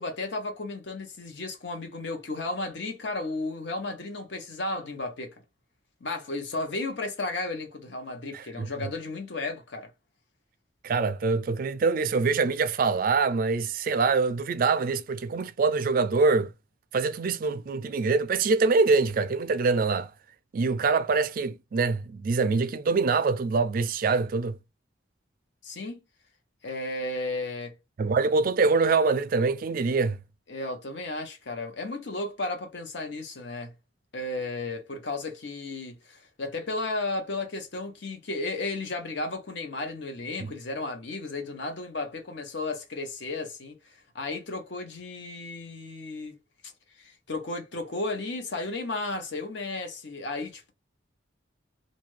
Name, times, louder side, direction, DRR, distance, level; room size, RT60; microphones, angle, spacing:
voice 1, 0.0-5.3 6.0-9.9 25.6-26.0 26.6-27.7 30.5-33.7 34.1-46.4 46.6-46.7 47.0-50.7, left 2 dB, 65° left, 0.8 m, -34 dB
voice 2, 8.3-8.7 10.8-16.5 16.9-20.1 20.5-24.6 28.0-30.2 40.4-40.5, right 4 dB, 45° right, 0.3 m, -24 dB
2.6 x 2.4 x 3.2 m
head